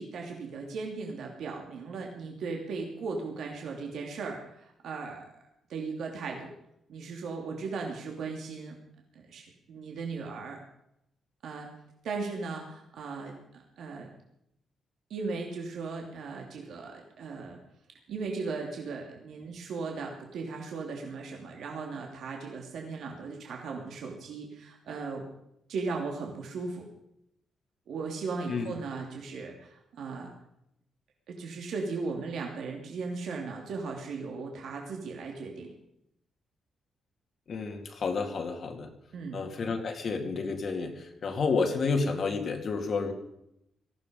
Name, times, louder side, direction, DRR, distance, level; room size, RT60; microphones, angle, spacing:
voice 1, 0.0-5.2 5.7-6.5 6.9-8.7 9.1-10.6 11.4-11.7 12.0-14.1 15.1-17.6 18.1-25.3 25.7-26.9 27.9-30.3 31.3-35.7 39.1-39.4, right 4 dB, 70° right, 1 dB, 2.9 m, -37 dB
voice 2, 37.5-38.9 39.3-43.1, left 4 dB, 45° left, 4 dB, 2.2 m, -30 dB
18.5 x 15.0 x 5.3 m, 0.79 s
cardioid pair, 150°, 0 cm